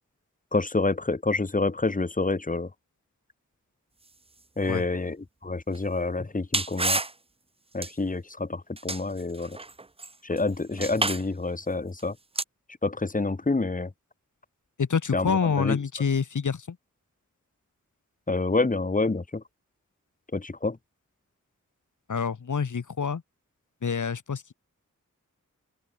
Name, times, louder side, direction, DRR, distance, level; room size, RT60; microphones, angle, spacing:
voice 1, 0.5-2.7 4.6-5.2 5.4-7.0 7.7-9.6 10.2-12.1 12.8-13.9 15.1-15.8 18.3-19.4 20.3-20.8, left 3 dB, 25° left, 1.2 m, -27 dB
sound 1, 5.7-5.8 6.5-7.1 7.8-7.9 8.8-10.4 10.7-11.2 12.0-12.1 12.4-12.5, right 3 dB, 20° right, 0.6 m, -29 dB
voice 2, 14.8-16.8 22.1-23.2 23.8-24.5, left 6 dB, 65° left, 1.4 m, -27 dB
open air
cardioid pair, 45°, 32 cm